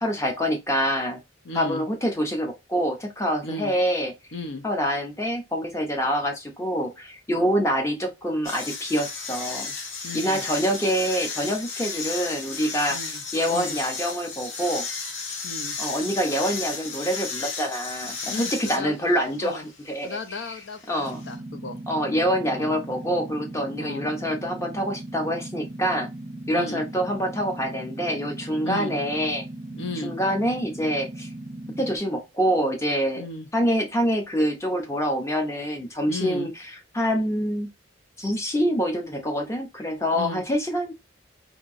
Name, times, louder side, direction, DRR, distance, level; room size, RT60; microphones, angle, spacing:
voice 1, 0.0-1.2 1.5-4.1 4.6-9.7 10.1-14.9 15.8-20.6 20.9-21.2 21.9-26.1 26.5-29.5 30.0-31.3 31.8-33.2 33.5-36.5 36.9-37.7 38.2-40.9, equal, 15° left, 0.6 m, -26 dB
voice 2, 1.4-1.8 3.4-3.7 4.3-4.6 10.0-10.4 12.9-13.8 15.4-15.8 18.3-19.0 19.4-19.7 20.0-21.8 22.5-22.7 23.8-24.1 26.5-26.8 28.6-29.0 29.7-30.1 33.2-33.5 36.1-36.5 40.1-40.4, left 2 dB, 65° left, 0.5 m, -35 dB
sound 1, 8.4-21.3, left 4 dB, 85° left, 0.9 m, -34 dB
sound 2, 21.0-32.0, right 1 dB, 20° right, 0.7 m, -38 dB
2.9 x 2.7 x 2.5 m
head